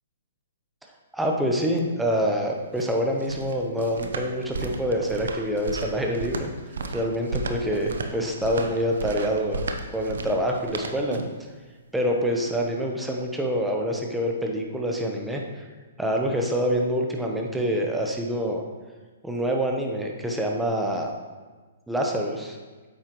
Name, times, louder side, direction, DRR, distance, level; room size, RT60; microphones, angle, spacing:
voice 1, 1.1-6.5 6.9-9.6 9.9-11.2 11.9-15.6 16.0-18.6 19.2-21.1 21.9-22.6, equal, 5° right, 0 dB, 1.0 m, -26 dB
sound 1, 2.5-11.4, right 3 dB, 75° right, 0.8 m, -34 dB
9.0 x 7.4 x 3.1 m, 1.3 s
hypercardioid pair, 140°, 0 cm